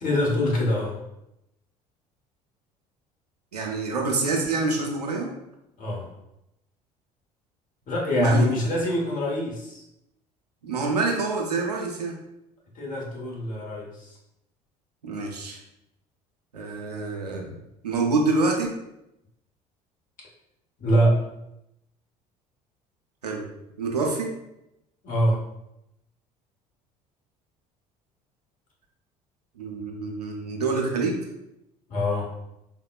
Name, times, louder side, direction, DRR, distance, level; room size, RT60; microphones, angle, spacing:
voice 1, 0.0-1.0 5.8-6.1 7.9-9.8 12.7-14.2 20.8-21.3 25.0-25.4 31.9-32.3, equal, 40° left, -3 dB, 1.0 m, -24 dB
voice 2, 3.5-5.4 8.2-8.5 10.6-12.2 15.0-15.6 16.5-17.6 17.8-18.8 23.2-23.5 23.8-24.3 29.6-31.2, right 3 dB, 90° right, 0 dB, 0.4 m, -26 dB
3.5 x 2.1 x 2.3 m, 0.85 s
figure-of-eight pair, 60°, 20 cm